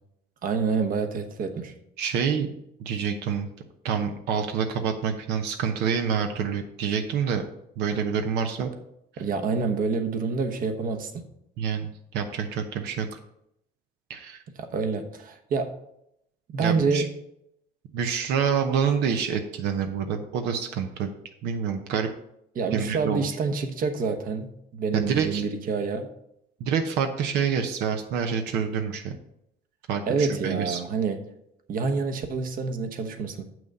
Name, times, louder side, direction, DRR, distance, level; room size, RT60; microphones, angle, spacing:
voice 1, 0.4-1.7 9.2-11.2 14.6-15.7 16.5-17.1 22.5-26.1 30.1-31.3 31.7-33.4, right 4 dB, 55° right, 7 dB, 1.1 m, -27 dB
voice 2, 2.0-2.5 2.8-3.5 3.8-7.4 7.8-8.7 11.6-13.2 14.1-14.4 16.6-17.0 17.9-21.1 21.4-22.1 22.7-23.2 24.9-25.4 26.6-29.2 29.9-30.8, right 7 dB, 85° right, 5 dB, 0.9 m, -27 dB
7.4 x 6.2 x 5.3 m, 0.78 s
cardioid pair, 110°, 17 cm